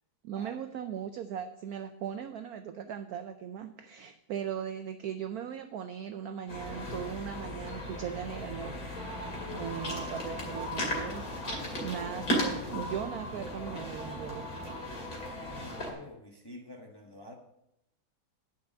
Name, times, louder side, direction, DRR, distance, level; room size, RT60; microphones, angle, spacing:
voice 1, 0.2-8.8 9.5-14.6, right 8 dB, 80° right, 9 dB, 0.8 m, -38 dB
sound 1, 6.5-15.9, equal, 50° left, 2.8 m, -36 dB
voice 2, 15.3-17.3, left 1 dB, 20° left, 1 dB, 0.7 m, -48 dB
9.5 x 5.8 x 7.1 m, 0.84 s
omnidirectional pair, 2.2 m